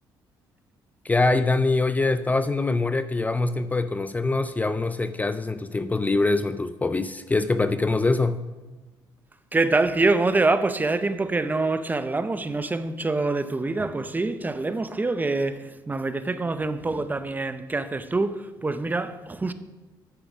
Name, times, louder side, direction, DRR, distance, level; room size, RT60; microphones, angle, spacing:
voice 1, 1.0-8.4, left 3 dB, 20° left, 0.4 m, -24 dB
voice 2, 9.5-19.5, right 3 dB, 20° right, 0.6 m, -25 dB
9.4 x 7.1 x 6.0 m
cardioid pair, 90°, 9 cm